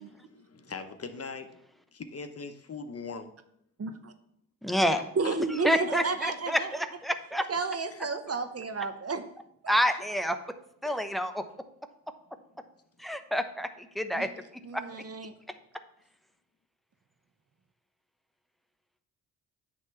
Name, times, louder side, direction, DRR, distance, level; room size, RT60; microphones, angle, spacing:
voice 1, 0.1-1.6 1.9-3.3 4.9-5.4 7.9-8.4 10.8-10.9, left 4 dB, 40° left, 8 dB, 0.9 m, -41 dB
voice 2, 3.8-4.1 5.2-6.7 7.5-9.2 9.6-9.9 14.2-14.3 14.6-15.3, right 4 dB, 40° right, 9 dB, 0.9 m, -32 dB
voice 3, 4.6-5.0 5.6-7.5 9.7-10.4 10.8-11.4 13.0-14.3 14.7-14.8, equal, ahead, 8 dB, 0.8 m, -28 dB
8.9 x 3.5 x 6.8 m, 0.75 s
cardioid pair, 60°, 38 cm